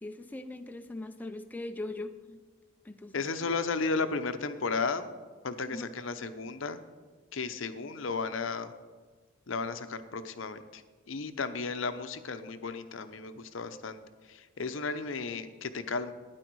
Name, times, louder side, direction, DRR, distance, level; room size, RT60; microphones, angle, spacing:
voice 1, 0.0-2.4 2.8-3.2 5.7-5.9 9.7-9.8, left 2 dB, 10° left, 6 dB, 0.4 m, -40 dB
voice 2, 3.1-5.1 5.4-6.8 7.3-8.7 9.5-10.8 11.1-14.0 14.3-16.1, left 4 dB, 65° left, 10 dB, 0.7 m, -34 dB
12.0 x 9.8 x 4.7 m, 1.4 s
head